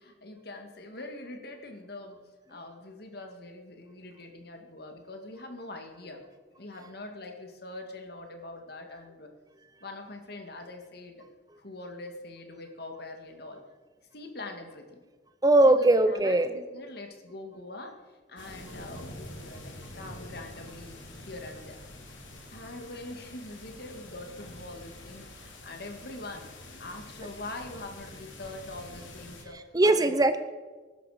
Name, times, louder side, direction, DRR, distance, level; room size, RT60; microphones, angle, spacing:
voice 1, 0.0-2.2 2.5-6.2 6.6-9.3 9.8-11.3 11.6-13.6 14.1-15.0 15.7-21.8 22.5-26.5 26.8-30.2, left 2 dB, 55° left, 4 dB, 2.1 m, -43 dB
voice 2, 15.4-16.5 29.7-30.4, right 2 dB, 20° right, 11 dB, 0.6 m, -20 dB
sound 1, 18.4-29.4, left 1 dB, 80° left, 3.2 m, -46 dB
21.5 x 12.0 x 5.1 m, 1.4 s
head